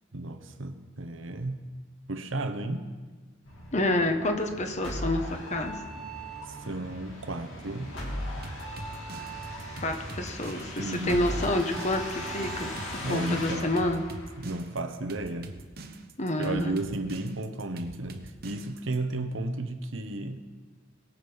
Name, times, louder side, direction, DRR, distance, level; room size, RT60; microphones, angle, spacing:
voice 1, 0.1-1.6 2.1-2.9 6.6-7.9 10.8-11.3 13.0-13.7 14.4-15.5 16.4-20.5, right 2 dB, 75° right, 7 dB, 1.1 m, -33 dB
sound 1, 3.4-14.9, equal, 75° left, 2.9 m, -38 dB
voice 2, 3.7-5.8 9.8-12.7 13.1-14.1 16.2-16.8, left 1 dB, 35° left, 5 dB, 1.2 m, -28 dB
sound 2, 8.4-19.0, right 2 dB, 50° right, 1.0 m, -43 dB
21.0 x 7.5 x 5.7 m, 1.4 s
head